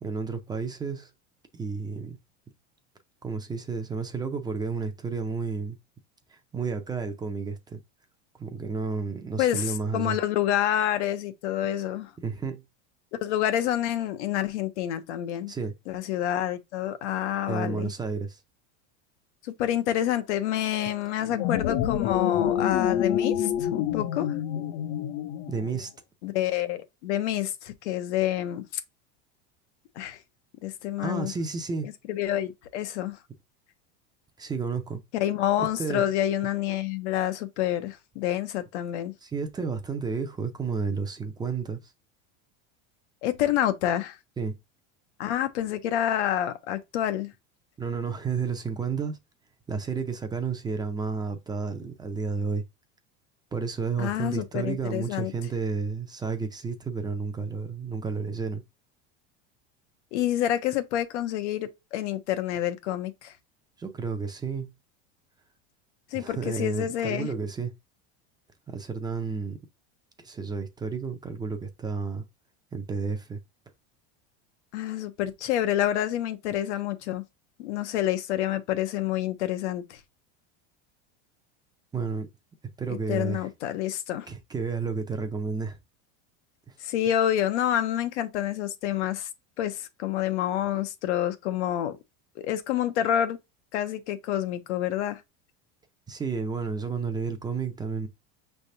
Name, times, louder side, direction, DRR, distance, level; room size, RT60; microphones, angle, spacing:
voice 1, 0.0-1.1 1.5-2.2 3.2-5.8 6.3-7.8 8.4-10.2 12.2-12.6 15.5-15.7 17.5-18.4 25.5-25.9 31.0-31.9 34.4-35.0 35.6-36.1 39.2-41.9 44.4-44.5 47.8-49.2 49.7-52.6 53.5-58.6 63.8-64.7 66.1-67.7 68.7-69.6 70.2-72.2 72.7-73.4 81.9-82.3 82.8-83.5 84.3-85.8 86.7-86.8 96.1-98.1, right 5 dB, 10° right, 0.5 m, -31 dB
voice 2, 9.4-12.1 13.2-15.5 15.9-17.9 19.4-24.3 26.2-28.6 30.0-30.2 30.6-31.3 31.8-33.2 35.1-39.1 43.2-44.2 45.2-47.3 54.0-55.3 60.1-63.3 66.1-67.3 74.7-77.2 77.6-80.0 83.1-84.3 86.8-89.3 89.6-92.0 92.4-93.4 93.7-95.2, left 11 dB, 85° left, 0.9 m, -28 dB
sound 1, 21.2-25.8, left 10 dB, 60° left, 0.7 m, -27 dB
5.5 x 3.4 x 2.7 m
supercardioid pair, 145°, 34 cm